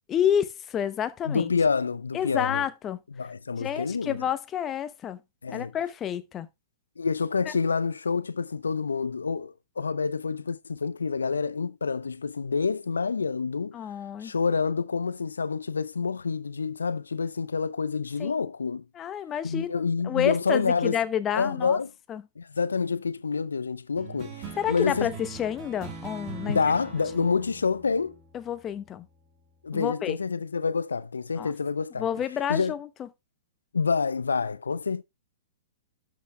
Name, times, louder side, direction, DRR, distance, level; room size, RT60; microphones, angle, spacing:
voice 1, 0.1-1.5 2.1-3.0 3.6-5.2 5.5-6.5 7.5-7.6 13.7-14.3 18.2-18.5 18.9-21.8 22.1-22.2 24.6-26.6 27.2-27.3 28.3-29.1 29.7-30.2 31.4-31.5 32.0-33.1, left 9 dB, 25° left, 1.0 m, -29 dB
voice 2, 1.2-2.6 3.2-4.2 5.4-5.7 7.0-13.8 14.2-18.8 19.4-21.0 21.3-21.9 22.4-25.1 26.4-28.2 29.6-32.0 32.5-32.7 33.7-35.0, left 5 dB, 80° left, 0.6 m, -27 dB
sound 1, 24.0-28.9, right 5 dB, 30° right, 3.1 m, -42 dB
12.5 x 6.0 x 3.3 m
figure-of-eight pair, 110°, 0 cm